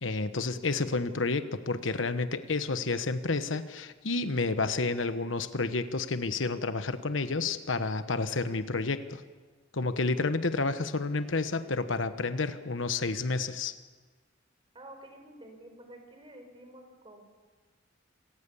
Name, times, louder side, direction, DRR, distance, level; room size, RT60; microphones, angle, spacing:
voice 1, 0.0-9.2 9.7-13.7, left 3 dB, 90° left, 11 dB, 1.2 m, -30 dB
voice 2, 14.7-17.2, right 1 dB, 30° right, 4 dB, 4.5 m, -50 dB
27.0 x 18.5 x 7.1 m, 1.4 s
head